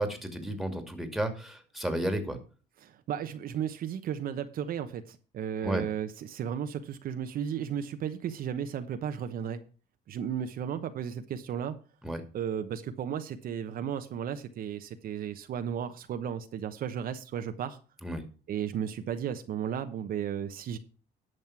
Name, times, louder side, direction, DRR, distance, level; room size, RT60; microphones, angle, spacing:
voice 1, 0.0-2.4 5.6-5.8 12.0-12.2 18.0-18.2, right 1 dB, ahead, 7 dB, 2.4 m, -32 dB
voice 2, 2.8-9.6 10.1-11.7 12.3-17.8 18.5-20.8, right 9 dB, 60° right, 8 dB, 1.0 m, -34 dB
11.0 x 6.6 x 5.9 m, 0.36 s
cardioid pair, 110°, 17 cm